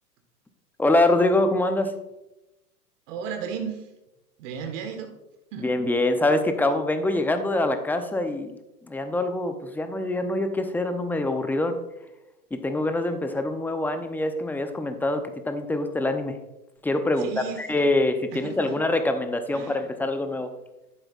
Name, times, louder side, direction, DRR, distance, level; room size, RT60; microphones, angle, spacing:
voice 1, 0.8-1.9 5.6-8.6 8.8-11.8 12.5-16.4 16.8-17.3 17.6-20.5, left 2 dB, 5° left, 8 dB, 0.6 m, -24 dB
voice 2, 3.1-3.9 4.4-5.1 5.5-5.7 17.2-17.8 18.3-18.7 19.5-19.9, right 7 dB, 55° right, 5 dB, 1.7 m, -35 dB
13.0 x 7.7 x 2.5 m, 0.94 s
hypercardioid pair, 105°, 46 cm